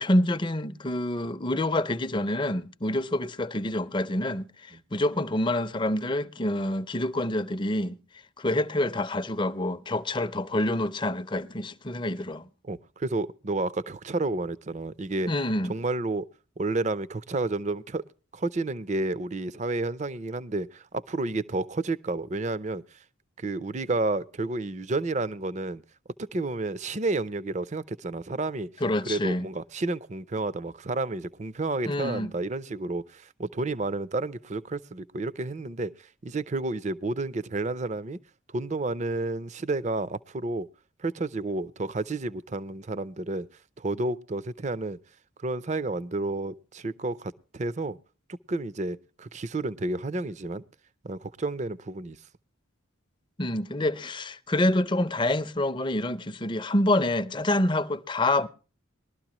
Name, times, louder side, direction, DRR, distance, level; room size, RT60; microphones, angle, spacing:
voice 1, 0.0-8.0 8.4-12.5 15.3-15.7 28.8-29.5 31.9-32.3 53.4-58.5, left 1 dB, 20° left, 0.6 m, -27 dB
voice 2, 12.6-15.3 15.7-16.3 16.6-18.0 18.3-23.0 23.4-25.8 26.2-28.7 29.1-38.2 38.5-40.7 41.0-43.5 43.8-45.0 45.4-48.0 48.5-50.6 51.0-52.2, right 2 dB, 35° right, 0.5 m, -31 dB
20.5 x 12.5 x 3.0 m
head